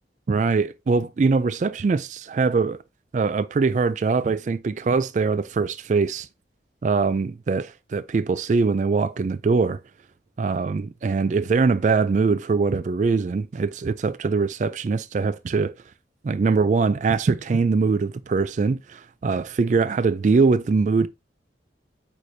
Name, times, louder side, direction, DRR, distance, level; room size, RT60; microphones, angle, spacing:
voice 1, 0.3-2.8 3.1-6.3 6.8-9.8 10.4-15.7 16.2-21.1, right 4 dB, 40° right, 0.3 m, -22 dB
8.5 x 4.9 x 2.7 m
head